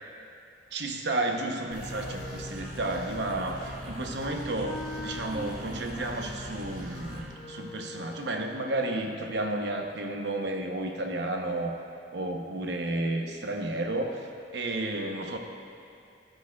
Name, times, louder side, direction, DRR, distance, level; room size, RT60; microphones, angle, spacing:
voice 1, 0.7-11.8 12.1-14.3 14.5-15.4, right 2 dB, 75° right, 3 dB, 0.9 m, -32 dB
sound 1, 1.7-7.3, equal, 50° right, 1.5 m, -41 dB
Wind instrument woodwind instrument, 1.9-8.3, equal, 45° left, 1.5 m, -43 dB
14.0 x 8.9 x 2.4 m, 2.6 s
head